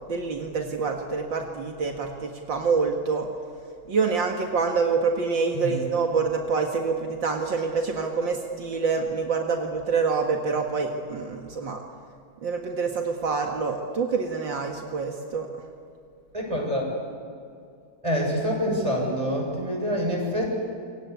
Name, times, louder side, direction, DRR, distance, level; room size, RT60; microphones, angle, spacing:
voice 1, 0.1-3.3 3.9-11.8 12.4-15.5, right 5 dB, 70° right, 2 dB, 2.6 m, -26 dB
voice 2, 16.3-16.9 18.0-20.5, equal, 15° right, 0 dB, 7.4 m, -26 dB
28.0 x 25.0 x 8.5 m, 2.4 s
omnidirectional pair, 2.1 m